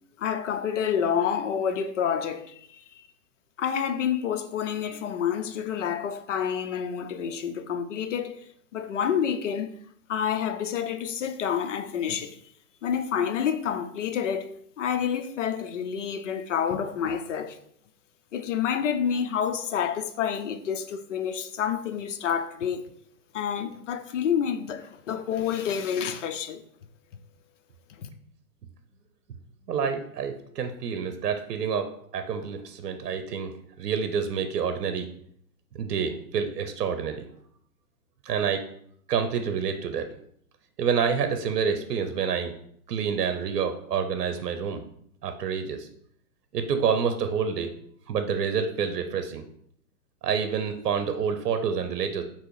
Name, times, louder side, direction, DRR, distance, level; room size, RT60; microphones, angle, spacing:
voice 1, 0.2-3.0 3.6-8.4 8.7-9.7 10.1-12.4 12.8-14.5 14.8-17.6 18.3-22.8 23.3-26.6 28.0-28.1, left 8 dB, 50° left, 0.5 m, -28 dB
voice 2, 29.7-33.5 33.8-35.1 35.7-37.3 38.2-38.6 39.1-40.2 40.8-42.5 42.9-44.8 45.2-45.9 46.5-47.7 48.1-49.4 50.2-52.2, right 6 dB, 80° right, 0.8 m, -28 dB
3.6 x 3.0 x 4.6 m
hypercardioid pair, 160°, 47 cm